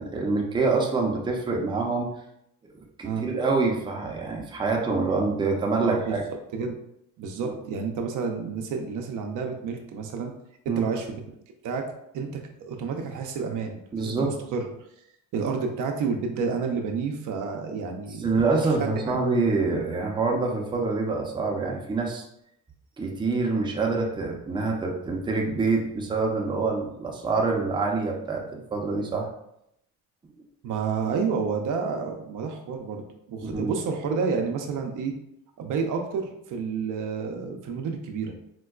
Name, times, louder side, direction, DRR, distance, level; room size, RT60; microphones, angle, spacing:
voice 1, 0.0-2.1 3.0-6.2 7.4-7.5 10.7-10.9 13.9-14.3 18.2-22.2 23.0-29.3 33.4-33.7, right 3 dB, 15° right, -1 dB, 0.5 m, -26 dB
voice 2, 5.8-6.2 6.5-6.8 7.2-10.3 10.7-11.2 11.6-11.8 12.1-12.3 12.6-14.7 15.3-19.2 30.6-35.1 35.6-38.3, right 5 dB, 60° right, 3 dB, 0.5 m, -30 dB
4.4 x 2.2 x 2.3 m, 0.78 s
cardioid pair, 115°, 34 cm